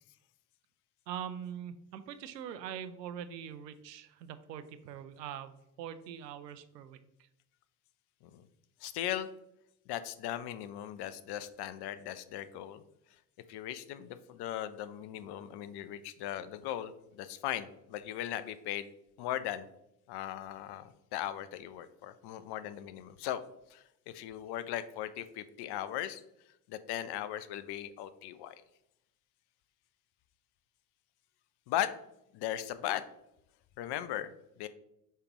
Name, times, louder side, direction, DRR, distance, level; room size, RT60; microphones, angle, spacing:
voice 1, 1.1-7.0, right 9 dB, 85° right, 11 dB, 0.6 m, -43 dB
voice 2, 8.8-9.3 9.9-12.8 13.5-18.9 19.2-19.7 20.1-23.4 23.7-26.2 26.7-28.6 31.7-31.9 32.3-33.0 33.8-34.3 34.6-34.7, left 12 dB, 55° left, 13 dB, 0.7 m, -38 dB
6.6 x 5.0 x 3.0 m, 0.81 s
hypercardioid pair, 60°, 48 cm